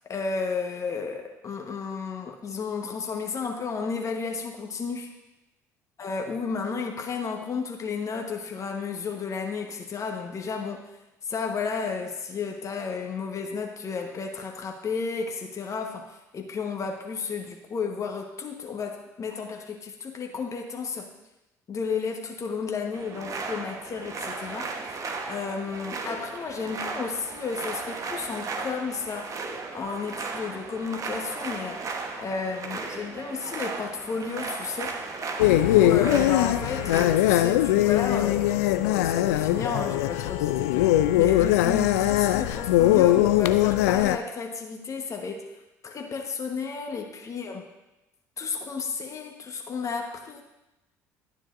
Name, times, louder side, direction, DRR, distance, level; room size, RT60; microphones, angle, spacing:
voice 1, 0.1-5.1 6.0-10.8 11.2-21.1 21.7-24.8 25.3-31.8 32.2-35.0 35.7-38.5 38.8-45.4 45.8-47.6 48.4-50.4, left 5 dB, 40° left, 3 dB, 1.2 m, -32 dB
sound 1, 22.9-37.0, right 4 dB, 40° right, 1.2 m, -36 dB
sound 2, 35.4-44.2, left 14 dB, 80° left, 0.4 m, -21 dB
11.5 x 9.6 x 2.6 m, 0.98 s
hypercardioid pair, 55°, 8 cm